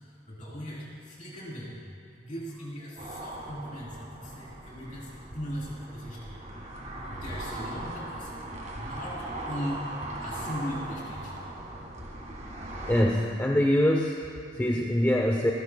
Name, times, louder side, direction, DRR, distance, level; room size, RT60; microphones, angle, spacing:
voice 1, 0.3-1.8 2.2-5.1 5.3-6.4 7.1-8.4 8.7-11.3, equal, 40° left, -5 dB, 3.5 m, -38 dB
sound 1, 3.0-13.0, right 1 dB, 40° right, 1.8 m, -39 dB
voice 2, 12.9-15.5, left 1 dB, 10° left, -1 dB, 0.6 m, -24 dB
28.0 x 11.0 x 2.3 m, 2.4 s
head